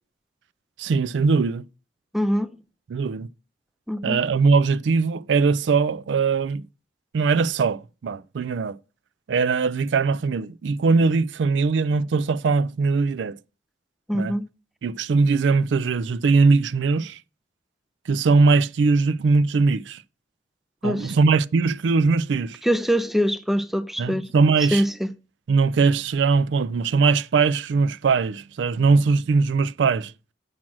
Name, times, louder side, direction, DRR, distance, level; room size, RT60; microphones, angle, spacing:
voice 1, 0.8-1.6 2.9-3.3 4.0-6.6 7.1-8.8 9.3-13.4 14.1-14.3 14.8-17.2 18.1-20.0 20.8-22.6 24.0-24.8 25.5-30.1, right 4 dB, 75° right, 0.4 m, -21 dB
voice 2, 2.1-2.5 3.9-4.2 14.1-14.4 20.8-21.2 22.6-24.3 24.7-25.1, equal, ahead, 0.4 m, -23 dB
7.4 x 6.0 x 6.0 m
head